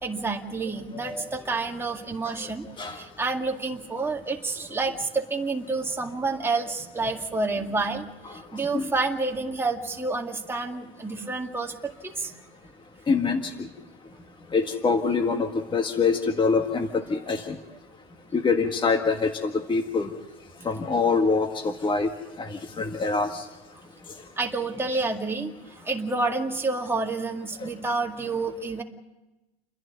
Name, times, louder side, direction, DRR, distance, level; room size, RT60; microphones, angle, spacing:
voice 1, 0.0-12.4 24.4-25.5 25.8-28.8, right 3 dB, 10° right, 1 dB, 2.2 m, -29 dB
voice 2, 13.1-13.7 14.5-17.6 18.3-20.1 20.7-22.1 22.4-23.4, left 4 dB, 15° left, 5 dB, 1.7 m, -25 dB
30.0 x 11.0 x 9.5 m, 1.0 s
supercardioid pair, 125°, 30 cm